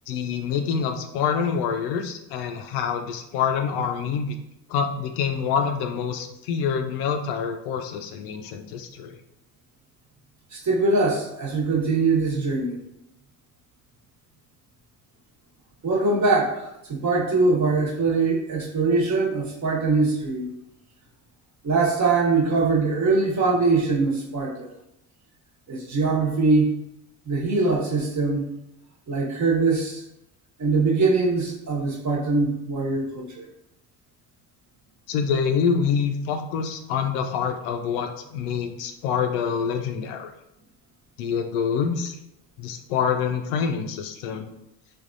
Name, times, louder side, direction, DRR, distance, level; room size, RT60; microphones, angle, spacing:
voice 1, 0.1-4.4 4.7-9.2 35.1-40.3 41.2-42.2 42.6-44.5, left 6 dB, 75° left, 5 dB, 0.5 m, -26 dB
voice 2, 10.5-12.8 15.8-20.5 21.6-24.7 25.7-26.7 27.3-28.5 29.1-30.0 30.6-33.5, right 3 dB, 35° right, -2 dB, 1.0 m, -22 dB
3.3 x 2.3 x 2.5 m, 0.84 s
supercardioid pair, 70°, 48 cm